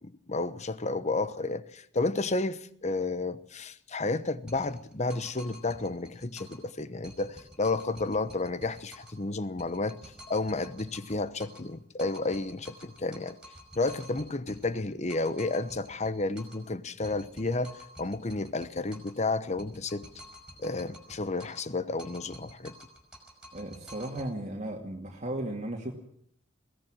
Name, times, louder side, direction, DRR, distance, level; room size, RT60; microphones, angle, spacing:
voice 1, 0.0-10.0 10.3-13.4 13.8-20.1 20.6-22.8, left 3 dB, 35° left, 1.0 m, -31 dB
sound 1, 4.5-6.7 7.0-9.2 9.6-11.7 12.0-16.7 17.0-19.2 19.6-21.7 22.0-24.3, equal, 5° right, 5.2 m, -50 dB
voice 2, 23.5-25.9, right 1 dB, 35° right, 2.2 m, -35 dB
22.0 x 17.0 x 7.5 m
head